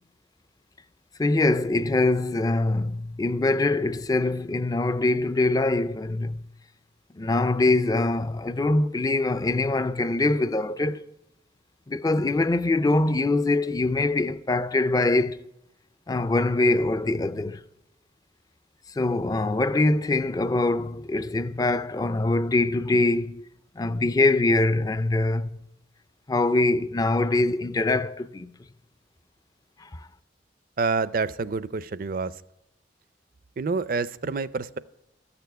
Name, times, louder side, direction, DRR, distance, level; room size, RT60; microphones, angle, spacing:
voice 1, 1.2-6.5 7.2-11.0 11.9-15.4 16.1-17.6 18.9-23.4 23.8-25.6 26.3-28.5 29.8-30.0, left 2 dB, 20° left, 0.4 m, -23 dB
voice 2, 30.8-32.3 33.6-34.8, right 4 dB, 50° right, 0.4 m, -27 dB
13.5 x 6.9 x 9.3 m
head